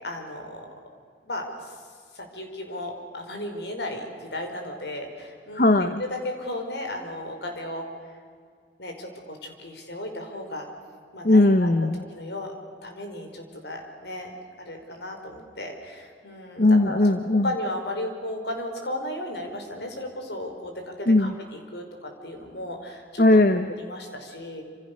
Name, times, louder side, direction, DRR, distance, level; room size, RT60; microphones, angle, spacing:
voice 1, 0.0-0.7 1.2-1.8 2.1-7.9 8.8-10.7 11.1-11.7 12.1-12.5 12.8-14.4 14.6-17.0 17.3-23.3 23.8-24.6, left 1 dB, 70° left, 4 dB, 5.1 m, -35 dB
voice 2, 5.5-6.0 11.2-12.0 16.6-17.5 21.1-21.3 23.2-23.7, left 2 dB, 50° left, 9 dB, 1.0 m, -18 dB
27.5 x 27.0 x 6.8 m, 2.1 s
head